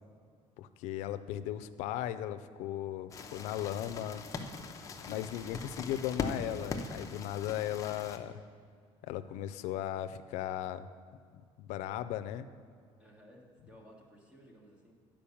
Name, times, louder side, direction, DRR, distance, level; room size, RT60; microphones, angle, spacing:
voice 1, 0.6-4.2 5.1-8.4 9.0-10.9 11.3-12.5, left 12 dB, 90° left, 11 dB, 0.4 m, -37 dB
sound 1, 3.1-8.2, left 4 dB, 30° left, 0.7 m, -41 dB
voice 2, 13.0-14.9, equal, 10° right, -1 dB, 1.5 m, -57 dB
10.0 x 5.2 x 7.0 m, 2.1 s
cardioid pair, 155°, 12 cm